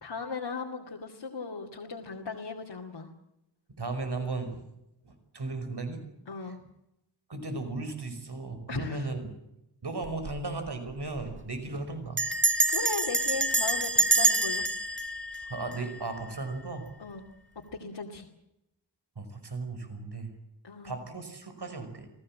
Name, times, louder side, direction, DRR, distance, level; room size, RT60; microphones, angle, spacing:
voice 1, 0.0-3.1 6.3-6.6 8.7-9.1 12.7-14.7 17.0-17.3 17.6-18.3 20.6-20.9, left 4 dB, 90° left, -1 dB, 2.5 m, -37 dB
voice 2, 3.8-4.6 5.1-6.0 7.3-9.3 9.8-12.2 15.5-16.9 19.2-20.3 20.8-22.1, right 3 dB, 70° right, 8 dB, 5.6 m, -36 dB
Bell, 10.0-10.4 10.7-10.8 11.0-11.4 12.2-16.3, right 2 dB, 25° right, 1.9 m, -27 dB
28.0 x 17.5 x 7.5 m, 0.87 s
wide cardioid pair, 80°, 42 cm